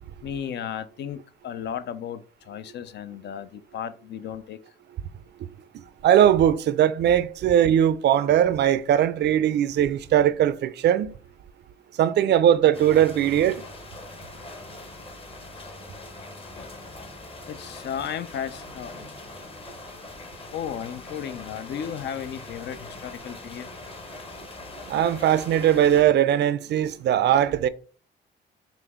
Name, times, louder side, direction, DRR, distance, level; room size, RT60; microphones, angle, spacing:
voice 1, 0.2-4.6 16.6-16.7 17.5-19.1 20.5-23.7, left 8 dB, 60° left, 0.4 m, -34 dB
voice 2, 6.0-11.1 12.0-13.6 24.9-27.7, right 10 dB, 60° right, 0.4 m, -20 dB
sound 1, 12.7-26.0, left 2 dB, 30° left, 0.9 m, -42 dB
5.6 x 2.0 x 3.5 m
cardioid pair, 90°, 20 cm